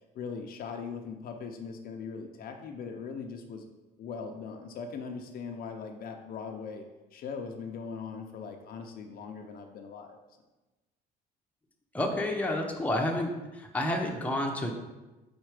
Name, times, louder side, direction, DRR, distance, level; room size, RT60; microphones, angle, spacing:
voice 1, 0.1-3.6 4.0-6.8 7.1-10.2, left 5 dB, 60° left, 4 dB, 0.7 m, -40 dB
voice 2, 11.9-14.7, left 1 dB, 10° left, 0 dB, 0.8 m, -30 dB
4.5 x 4.3 x 4.9 m, 1.1 s
cardioid pair, 110°, 17 cm